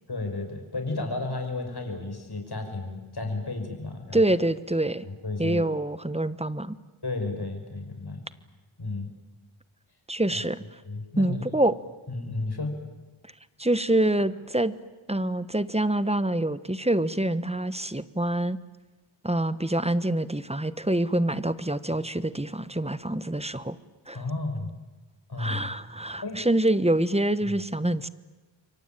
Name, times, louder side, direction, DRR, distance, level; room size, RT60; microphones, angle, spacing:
voice 1, 0.1-4.2 5.0-5.6 7.0-8.2 8.8-9.1 10.3-10.4 10.8-11.4 12.1-12.7 24.1-24.7 25.3-25.7 26.2-26.4 27.4-27.5, left 3 dB, 50° left, 4 dB, 6.0 m, -32 dB
voice 2, 4.1-5.1 5.4-6.8 10.1-10.6 11.2-11.7 13.6-14.7 15.1-18.6 19.2-23.8 24.1-24.2 25.4-28.1, right 1 dB, 10° right, 15 dB, 1.2 m, -26 dB
28.5 x 23.5 x 9.0 m, 1.2 s
wide cardioid pair, 55°, 49 cm